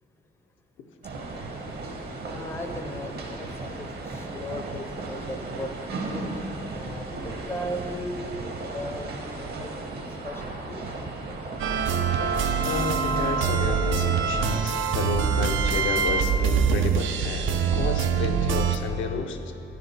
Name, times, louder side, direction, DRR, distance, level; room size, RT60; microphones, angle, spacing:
sound 1, 1.0-14.7, right 2 dB, 55° right, 0.8 m, -35 dB
voice 1, 2.3-6.3 6.7-9.8 10.1-10.8, equal, 10° left, 5 dB, 0.4 m, -37 dB
sound 2, 11.6-18.8, right 6 dB, 80° right, 0.4 m, -24 dB
voice 2, 12.6-19.5, left 4 dB, 75° left, 4 dB, 0.5 m, -31 dB
9.3 x 4.9 x 3.3 m, 2.9 s
cardioid pair, 90°, 20 cm